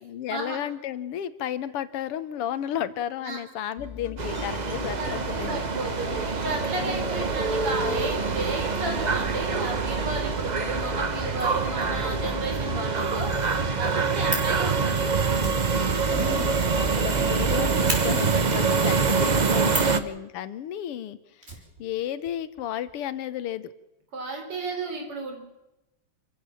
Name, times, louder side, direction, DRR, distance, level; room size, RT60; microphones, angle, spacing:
voice 1, 0.0-5.7 6.8-7.3 16.1-21.4 21.8-23.7, left 11 dB, 90° left, 15 dB, 2.0 m, -33 dB
sound 1, 3.8-19.5, left 3 dB, 45° left, 1.6 m, -39 dB
sound 2, 4.2-20.0, right 5 dB, 60° right, 0.4 m, -25 dB
voice 2, 5.0-13.3 13.8-15.1 24.1-25.4, right 2 dB, 85° right, 3 dB, 5.1 m, -33 dB
Fire, 14.2-14.6 15.3-17.1 17.4-17.5 17.8-18.0 19.6-20.0 21.4-22.3 22.6-22.7 22.9-23.0, right 1 dB, 25° right, 4.7 m, -33 dB
27.0 x 15.0 x 7.2 m, 0.93 s
omnidirectional pair, 2.4 m